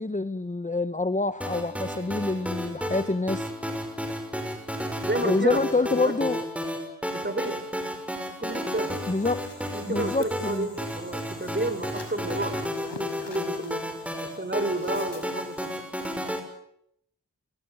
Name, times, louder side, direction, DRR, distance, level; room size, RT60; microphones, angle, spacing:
voice 1, 0.0-3.5 5.1-6.5 9.1-9.4 9.9-10.7, left 3 dB, 15° left, 12 dB, 1.0 m, -26 dB
sound 1, 1.4-16.4, equal, 5° right, 6.1 m, -32 dB
voice 2, 5.0-6.1 7.1-7.6 8.4-9.0 9.7-13.9 14.2-15.7, right 2 dB, 25° right, 9 dB, 5.6 m, -31 dB
sound 2, 8.8-15.8, left 3 dB, 65° left, 5.8 m, -48 dB
29.5 x 23.0 x 7.9 m, 0.75 s
cardioid pair, 45°, 44 cm